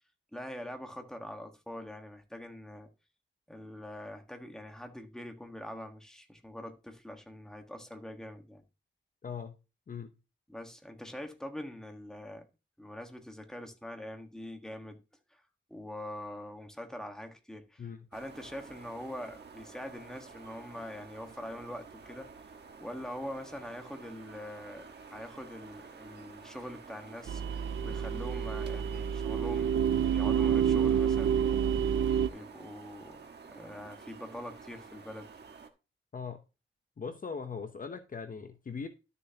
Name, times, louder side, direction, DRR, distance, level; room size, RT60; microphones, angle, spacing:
voice 1, 0.3-2.9 3.5-8.6 10.5-12.4 12.8-15.0 15.3-15.4 15.7-22.3 22.8-29.8 30.1-31.7 32.3-35.3, left 1 dB, 5° left, 1.4 m, -44 dB
voice 2, 9.2-9.6 9.9-10.1 17.8-18.0 27.8-28.0 36.1-36.4 37.0-38.9, left 5 dB, 40° left, 0.8 m, -40 dB
sound 1, 18.1-35.7, right 5 dB, 55° right, 1.3 m, -51 dB
sound 2, 27.3-32.3, right 8 dB, 75° right, 0.5 m, -28 dB
12.5 x 6.8 x 2.8 m
wide cardioid pair, 135°, 20 cm